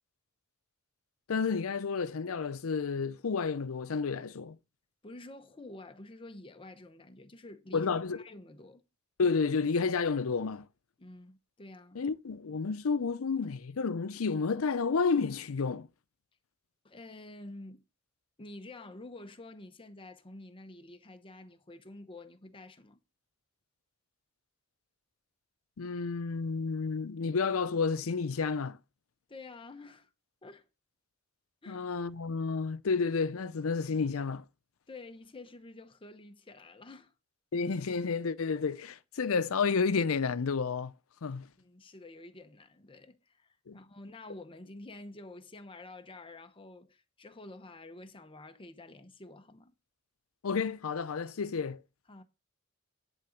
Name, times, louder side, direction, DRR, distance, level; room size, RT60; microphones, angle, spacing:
voice 1, 1.3-4.6 7.7-8.2 9.2-10.7 11.9-15.9 25.8-28.8 31.7-34.4 37.5-40.9 41.2-41.5 43.7-43.8 50.4-51.8, left 5 dB, 85° left, 0.6 m, -31 dB
voice 2, 5.0-7.9 8.1-8.8 11.0-12.0 16.8-17.8 18.4-23.0 29.3-30.1 30.4-30.7 31.6-31.9 34.9-37.1 41.6-49.7 52.1-52.2, left 2 dB, 25° left, 0.9 m, -49 dB
11.0 x 3.8 x 7.1 m
head